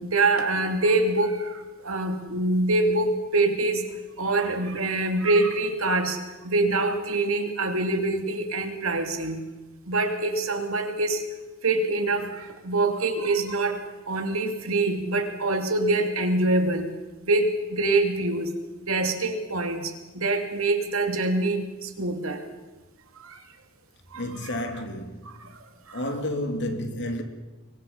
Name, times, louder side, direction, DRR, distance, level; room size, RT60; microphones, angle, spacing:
voice 1, 0.0-3.9 4.2-9.4 9.9-11.2 11.6-16.9 17.2-18.5 18.8-22.5 23.2-23.4 24.1-24.2 25.4-25.5 25.9-26.0, right 2 dB, 75° right, 3.0 m, -25 dB
voice 2, 24.1-25.6 25.9-27.2, left 1 dB, 55° left, 3.2 m, -31 dB
24.5 x 24.0 x 5.6 m
head